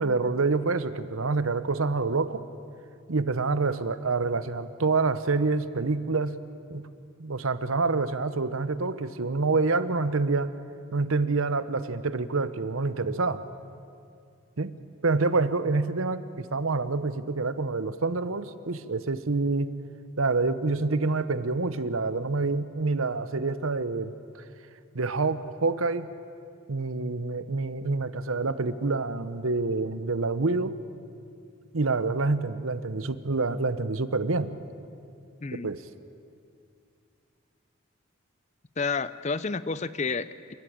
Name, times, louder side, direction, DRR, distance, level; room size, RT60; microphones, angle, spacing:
voice 1, 0.0-2.4 3.1-6.3 6.7-6.9 7.2-10.5 10.9-13.4 14.6-14.7 15.0-19.7 20.2-24.1 24.9-26.1 26.7-30.8 31.7-34.5 35.5-35.8, right 3 dB, 85° right, 13 dB, 0.9 m, -27 dB
voice 2, 38.8-40.5, left 4 dB, 35° left, 16 dB, 0.5 m, -30 dB
28.0 x 14.5 x 8.8 m, 2.5 s
head